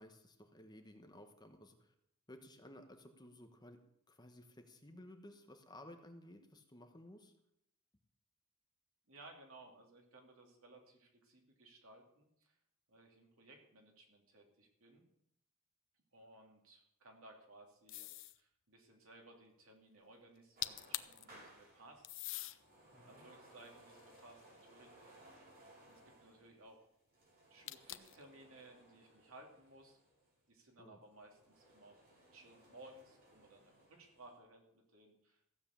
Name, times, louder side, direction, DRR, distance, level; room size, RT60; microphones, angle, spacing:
voice 1, 0.0-1.9 2.3-3.8 4.1-7.3 22.9-23.2 30.8-31.0, left 1 dB, 20° left, 5 dB, 1.2 m, -56 dB
voice 2, 9.1-12.5 12.9-15.0 16.1-22.2 23.0-25.2 25.9-26.9 27.5-30.0 30.5-32.0 32.3-35.4, right 2 dB, 65° right, 1 dB, 3.0 m, -60 dB
sound 1, 17.9-18.4 20.4-20.5 20.6-21.2 22.0-22.6 23.3-24.7 27.7-28.2, left 14 dB, 60° left, 0.6 m, -44 dB
sound 2, 20.6-30.4 31.0-34.4, right 1 dB, 45° right, 4.6 m, -63 dB
15.0 x 7.7 x 7.3 m, 0.77 s
head